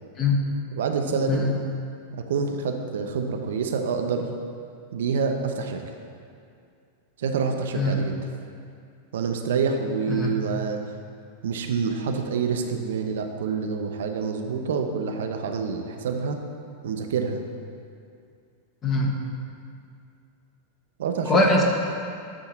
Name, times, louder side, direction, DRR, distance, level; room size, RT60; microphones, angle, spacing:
voice 1, 0.7-1.4 2.1-4.3 4.9-5.8 7.2-8.2 9.1-10.8 11.4-16.4 16.8-17.4 21.0-21.3, right 5 dB, 60° right, 5 dB, 0.5 m, -27 dB
voice 2, 18.8-19.2 21.3-21.6, left 2 dB, 25° left, 0 dB, 0.9 m, -22 dB
8.4 x 2.8 x 5.8 m, 2.4 s
figure-of-eight pair, 90°, 0 cm